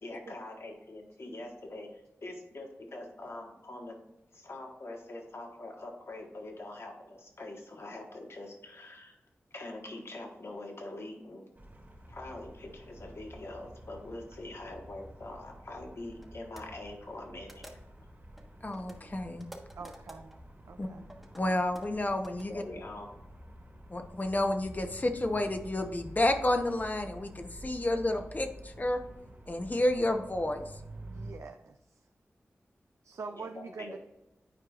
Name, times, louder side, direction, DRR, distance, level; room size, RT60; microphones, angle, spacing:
voice 1, 0.0-4.0 4.3-9.2 9.5-11.5 12.1-17.6 22.5-23.1 33.2-34.0, left 2 dB, 60° left, 1 dB, 1.5 m, -44 dB
sound 1, 11.6-31.3, right 1 dB, 40° right, 2.0 m, -49 dB
sound 2, 15.6-15.7 16.1-16.3 16.6-16.7 17.5-18.0 18.4-20.4 21.0-22.4, equal, 5° right, 1.3 m, -51 dB
voice 2, 18.6-19.4 20.8-20.9 21.3-22.6 23.9-29.0 29.5-30.7, left 1 dB, 35° left, 6 dB, 0.9 m, -30 dB
voice 3, 19.8-20.3 20.7-21.1 31.0-31.8 33.0-34.0, right 4 dB, 75° right, 5 dB, 0.4 m, -44 dB
9.9 x 4.6 x 2.5 m, 0.95 s
cardioid pair, 50°, 5 cm